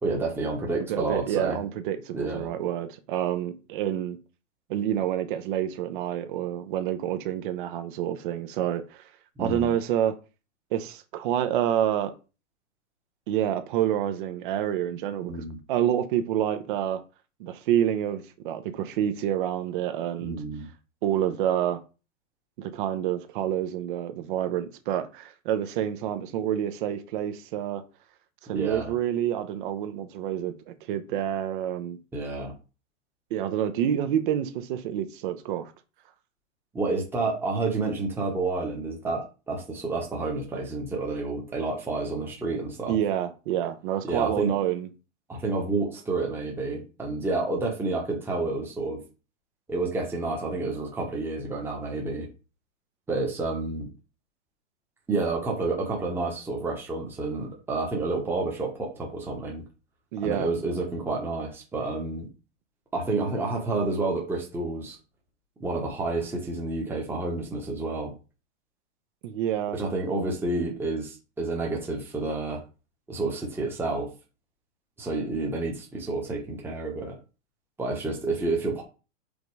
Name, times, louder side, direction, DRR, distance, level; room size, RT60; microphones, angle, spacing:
voice 1, 0.0-1.6 2.1-2.5 9.4-9.7 15.3-15.6 20.2-20.7 28.5-28.9 32.1-32.5 36.7-42.9 44.0-44.5 45.3-49.0 49.7-52.3 53.1-53.9 55.1-59.7 60.2-62.3 62.9-65.0 65.6-68.1 69.7-72.6 73.1-74.1 75.0-77.2 77.8-78.8, right 3 dB, 5° right, 1.1 m, -29 dB
voice 2, 0.9-4.2 4.7-9.1 9.4-10.2 10.7-12.1 13.3-15.3 15.7-17.0 17.4-20.4 21.0-21.8 22.6-27.8 28.4-32.0 33.3-35.7 42.9-44.9 60.1-60.5 69.2-69.8, right 10 dB, 40° right, 0.9 m, -28 dB
5.3 x 3.9 x 4.7 m
hypercardioid pair, 150°, 38 cm